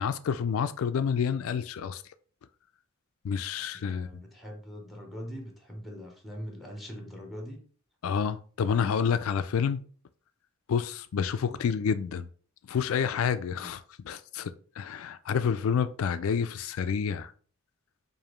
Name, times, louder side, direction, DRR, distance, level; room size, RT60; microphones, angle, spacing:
voice 1, 0.0-2.0 3.2-4.1 8.0-9.8 10.7-12.3 12.7-17.3, left 6 dB, 75° left, 0.3 m, -29 dB
voice 2, 3.7-7.6 11.5-11.7 13.5-13.7, equal, ahead, 0.9 m, -42 dB
4.9 x 2.6 x 3.1 m
head